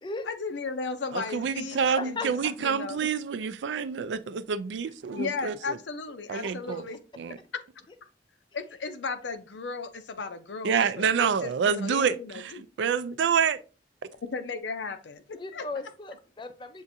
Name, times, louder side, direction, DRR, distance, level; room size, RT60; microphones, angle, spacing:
voice 1, 0.3-3.1 5.1-7.0 7.5-7.6 8.0-8.1 8.5-12.6 14.1-15.7, left 4 dB, 80° left, 0.6 m, -36 dB
voice 2, 1.1-5.8 6.3-6.8 7.2-7.4 10.6-13.6, right 6 dB, 80° right, 0.4 m, -27 dB
voice 3, 2.0-2.5 4.9-5.0 15.4-16.8, left 3 dB, 25° left, 0.4 m, -37 dB
7.0 x 2.5 x 2.6 m
head